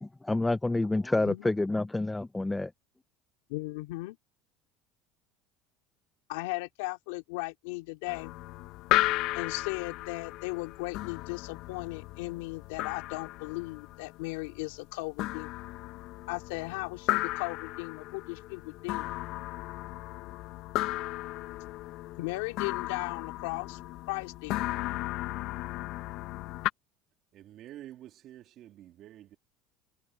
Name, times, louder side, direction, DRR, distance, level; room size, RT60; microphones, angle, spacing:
voice 1, 0.0-2.7, left 2 dB, 10° left, 0.7 m, -28 dB
voice 2, 1.2-1.5 3.5-4.2 6.3-8.3 9.3-15.6 16.3-19.1 22.2-23.8 24.1-24.6, left 23 dB, 85° left, 2.8 m, -37 dB
sound 1, 8.1-26.7, left 17 dB, 65° left, 1.0 m, -35 dB
voice 3, 27.3-29.4, right 13 dB, 55° right, 3.0 m, -48 dB
supercardioid pair, 100°, 0 cm